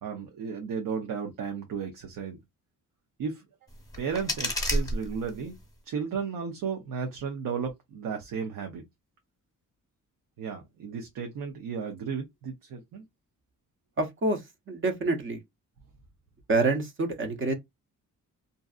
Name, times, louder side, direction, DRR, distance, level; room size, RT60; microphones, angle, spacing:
voice 1, 0.0-2.4 3.2-3.4 4.0-5.5 5.9-8.8 10.4-13.0, right 6 dB, 80° right, 0.7 m, -34 dB
sound 1, 3.7-5.7, equal, 10° left, 1.0 m, -31 dB
voice 2, 14.0-15.4 16.5-17.5, right 3 dB, 40° right, 0.8 m, -27 dB
2.6 x 2.4 x 2.3 m
cardioid pair, 105°, 32 cm